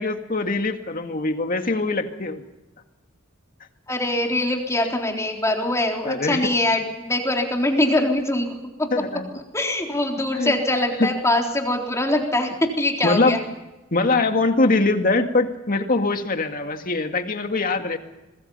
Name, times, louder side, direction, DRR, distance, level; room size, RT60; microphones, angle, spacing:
voice 1, 0.0-2.4 6.0-6.5 8.9-9.3 10.3-10.5 11.0-11.1 13.0-13.4 13.9-18.0, left 3 dB, 45° left, 6 dB, 2.1 m, -22 dB
voice 2, 3.9-8.9 9.5-13.4, left 1 dB, 15° left, 2 dB, 3.8 m, -23 dB
26.5 x 21.0 x 5.6 m, 1.0 s
head